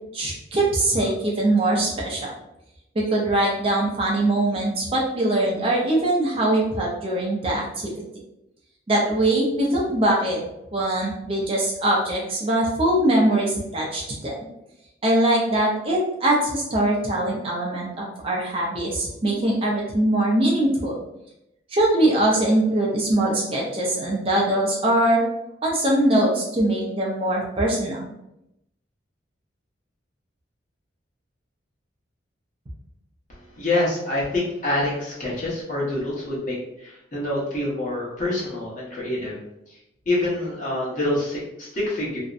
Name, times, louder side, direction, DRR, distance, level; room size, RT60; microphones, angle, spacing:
voice 1, 0.1-2.3 3.0-7.9 8.9-10.4 10.7-14.3 15.0-21.0 21.7-25.2 25.6-28.0, right 1 dB, 30° right, -3 dB, 0.4 m, -22 dB
voice 2, 33.3-39.4 39.7-39.8 40.1-42.2, left 1 dB, 40° left, -6 dB, 0.9 m, -26 dB
2.6 x 2.1 x 2.4 m, 0.84 s
head